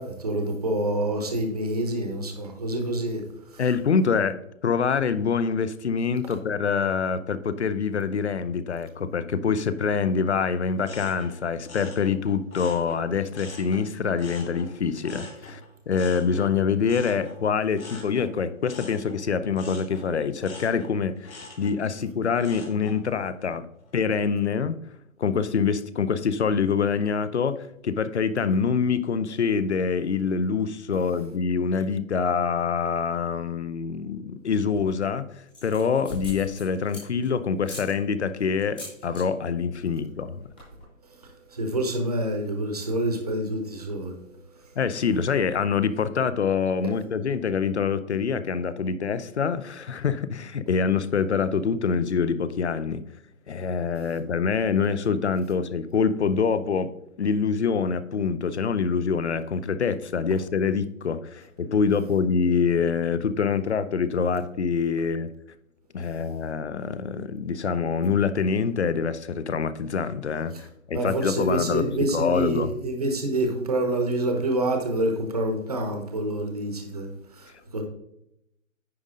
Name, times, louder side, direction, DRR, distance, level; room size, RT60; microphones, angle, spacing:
voice 1, 0.0-3.2 3.5-3.6 41.2-44.2 46.8-46.9 70.5-70.6 70.9-77.8, right 1 dB, 30° right, 4 dB, 0.9 m, -27 dB
voice 2, 3.6-4.3 4.6-15.6 15.9-23.7 23.9-24.8 25.2-27.5 27.8-35.2 35.6-40.4 44.8-53.0 53.5-56.9 57.2-65.3 65.9-72.7, left 6 dB, 55° left, 13 dB, 0.7 m, -25 dB
sound 1, 10.8-13.9 14.2-23.0 23.4-23.9, left 3 dB, 85° left, 3.2 m, -44 dB
sound 2, 34.5-35.0 35.5-37.3 37.6-37.9 38.6-39.2 39.5-39.8 40.1-40.2 40.4-40.8, left 1 dB, 5° left, 1.0 m, -40 dB
9.6 x 5.1 x 3.7 m, 0.80 s
hypercardioid pair, 180°, 41 cm